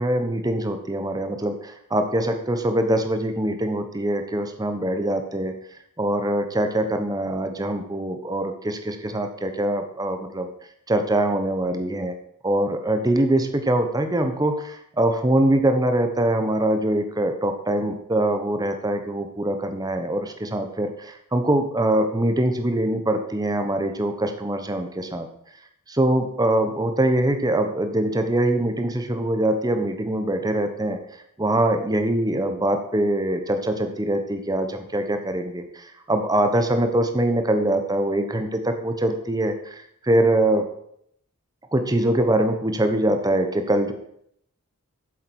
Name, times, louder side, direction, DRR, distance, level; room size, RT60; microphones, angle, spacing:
voice 1, 0.0-5.5 6.0-10.5 10.9-12.1 12.4-25.3 25.9-31.0 31.4-40.6 41.7-43.9, right 1 dB, 15° right, 7 dB, 1.0 m, -23 dB
8.2 x 7.4 x 6.3 m, 0.72 s
head